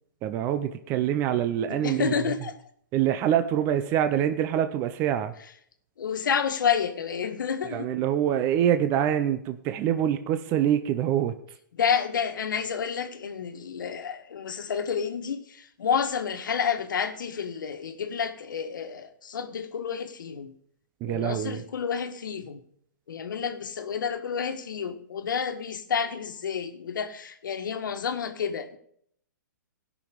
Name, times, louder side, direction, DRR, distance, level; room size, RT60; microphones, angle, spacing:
voice 1, 0.2-2.1 2.9-5.3 7.7-11.3 21.0-21.6, right 10 dB, 20° right, 9 dB, 0.5 m, -25 dB
voice 2, 1.7-2.5 6.0-7.9 11.7-20.5 21.1-22.6 23.1-28.8, left 7 dB, 75° left, 9 dB, 1.4 m, -30 dB
16.5 x 6.1 x 5.1 m, 0.66 s
hypercardioid pair, 155°, 11 cm